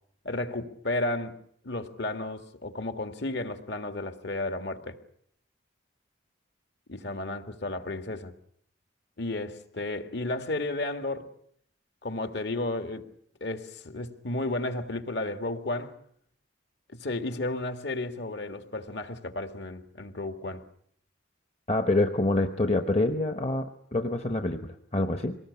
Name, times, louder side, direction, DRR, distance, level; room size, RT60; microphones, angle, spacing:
voice 1, 0.2-1.4 1.6-5.0 6.9-8.3 9.2-11.3 12.0-13.0 13.4-16.0 16.9-20.6, left 2 dB, 60° left, 2.0 m, -33 dB
voice 2, 21.7-25.4, left 2 dB, 35° left, 1.0 m, -26 dB
24.0 x 19.5 x 9.7 m
head